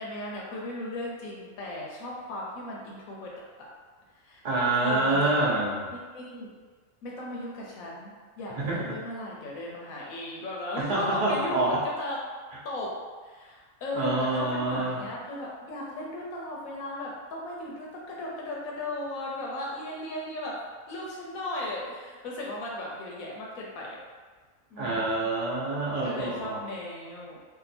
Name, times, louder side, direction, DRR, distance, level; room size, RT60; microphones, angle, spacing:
voice 1, 0.0-3.3 3.6-3.7 4.2-4.4 4.8-5.5 5.9-6.5 7.0-12.2 12.6-12.9 13.2-20.6 20.9-24.0 24.7-25.3 26.0-27.4, left 1 dB, 90° left, -4 dB, 1.1 m, -36 dB
voice 2, 4.4-5.8 8.6-8.8 10.8-11.8 13.9-15.0 24.8-26.6, right 2 dB, 35° right, -6 dB, 0.7 m, -27 dB
2.8 x 2.5 x 4.1 m, 1.5 s
omnidirectional pair, 1.4 m